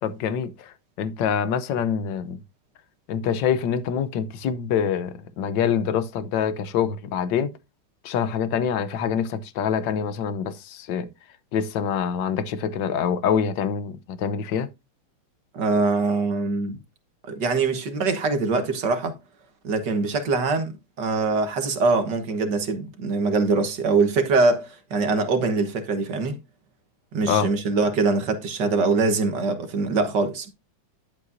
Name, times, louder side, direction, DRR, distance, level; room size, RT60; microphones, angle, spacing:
voice 1, 0.0-2.4 3.1-7.5 8.0-11.1 11.5-14.7 27.3-27.5, left 7 dB, 65° left, 1.5 m, -25 dB
voice 2, 15.5-16.8 17.2-19.2 19.6-20.7 21.0-26.4 27.1-30.5, right 3 dB, 55° right, 1.9 m, -23 dB
11.0 x 7.9 x 2.6 m
omnidirectional pair, 2.3 m